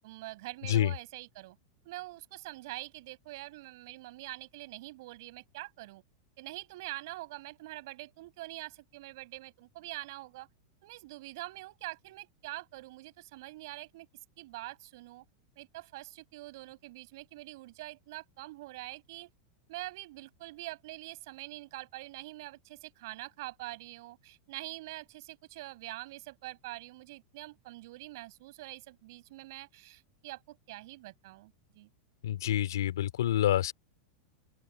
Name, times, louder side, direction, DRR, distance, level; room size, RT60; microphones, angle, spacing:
voice 1, 0.0-1.6 1.8-6.0 6.4-10.5 10.8-14.1 14.4-15.2 15.6-19.3 19.7-31.9, right 19 dB, 65° right, 7.3 m, -45 dB
voice 2, 32.2-33.7, left 12 dB, 90° left, 2.9 m, -27 dB
open air
supercardioid pair, 135°, 2 cm